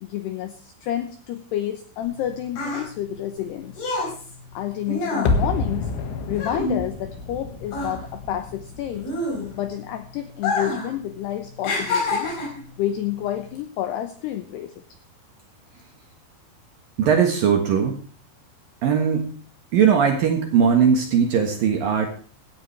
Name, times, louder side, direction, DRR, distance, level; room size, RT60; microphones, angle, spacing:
voice 1, 0.0-3.9 4.5-5.9 6.3-9.0 9.6-12.4 12.8-14.7, left 11 dB, 85° left, 9 dB, 2.4 m, -29 dB
sound 1, 2.0-7.4 7.7-9.8 10.3-10.9 11.2-12.7 13.4-13.6, left 2 dB, 50° left, 6.2 m, -28 dB
sound 2, 5.3-10.2 10.5-10.6, left 3 dB, 70° left, 3.7 m, -29 dB
voice 2, 17.0-18.0 18.8-19.4 19.7-22.1, right 7 dB, 65° right, 3 dB, 2.5 m, -19 dB
16.0 x 13.5 x 3.3 m, 0.40 s
omnidirectional pair, 5.9 m